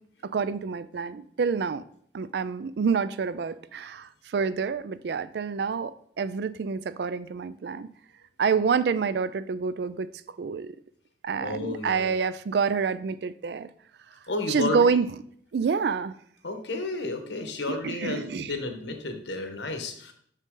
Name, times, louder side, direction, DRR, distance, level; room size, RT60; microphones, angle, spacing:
voice 1, 0.2-1.8 2.1-7.9 8.4-10.1 10.4-10.8 11.2-13.7 14.5-15.1 15.5-16.2 17.7-18.5, right 5 dB, 60° right, 0.3 m, -27 dB
voice 2, 11.4-12.2 14.3-15.0 16.4-20.1, left 2 dB, 80° left, 1.2 m, -32 dB
6.5 x 6.2 x 3.8 m
head